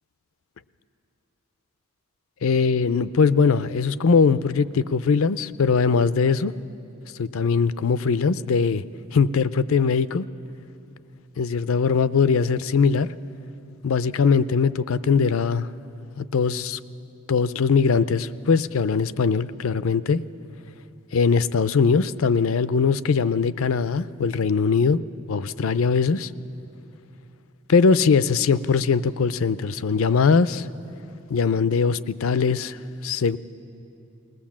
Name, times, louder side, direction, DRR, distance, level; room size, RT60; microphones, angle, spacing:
voice 1, 2.4-6.5 7.2-8.8 9.1-10.3 11.4-13.1 13.8-15.7 16.2-16.8 17.3-20.2 21.1-25.0 25.3-26.3 27.7-30.7 31.3-32.8 33.0-33.4, left 5 dB, 85° left, 15 dB, 0.5 m, -21 dB
20.5 x 19.0 x 7.4 m, 2.7 s
head